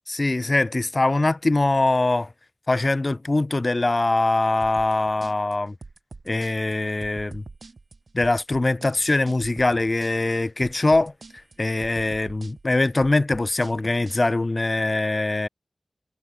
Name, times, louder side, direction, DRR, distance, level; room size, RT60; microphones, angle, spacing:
voice 1, 0.1-2.3 2.7-5.7 6.3-7.4 8.1-11.1 11.6-15.5, left 2 dB, 40° left, 0.5 m, -22 dB
sound 1, 4.6-14.2, right 3 dB, 65° right, 0.7 m, -44 dB
cardioid pair, 45°, 0 cm